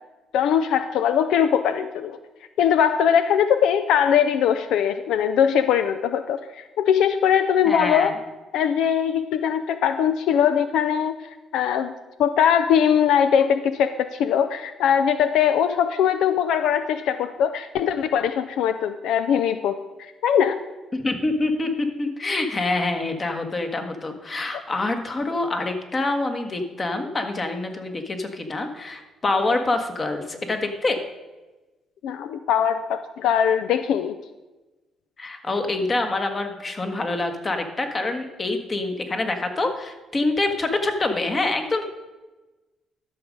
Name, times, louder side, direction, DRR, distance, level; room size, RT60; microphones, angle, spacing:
voice 1, 0.3-2.2 2.6-8.1 8.5-11.2 11.5-11.9 12.2-19.8 20.2-20.6 32.0-34.2, left 8 dB, 80° left, 11 dB, 0.4 m, -21 dB
voice 2, 7.7-8.1 20.9-31.0 35.2-41.8, left 2 dB, 35° left, 6 dB, 1.5 m, -26 dB
12.5 x 6.4 x 5.2 m, 1.2 s
cardioid pair, 90°, 0 cm